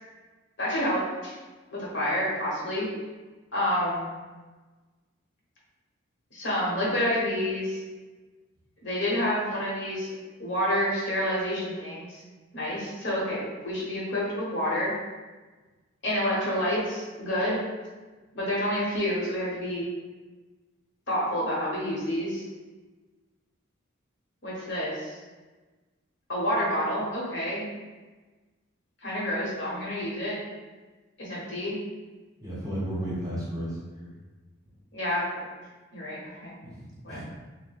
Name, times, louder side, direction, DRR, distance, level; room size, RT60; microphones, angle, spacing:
voice 1, 0.6-1.3 1.7-2.9 3.5-4.1 6.3-7.8 8.8-10.1 10.4-12.2 12.5-14.9 16.0-17.6 18.3-19.9 21.1-22.4 24.4-25.1 26.3-27.6 29.0-30.4 31.2-31.8 34.9-35.4 35.9-36.5 37.0-37.2, equal, 55° left, -6 dB, 1.1 m, -28 dB
voice 2, 32.4-34.1 36.6-37.2, right 1 dB, 15° right, -7 dB, 0.9 m, -34 dB
3.4 x 2.1 x 4.0 m, 1.3 s
head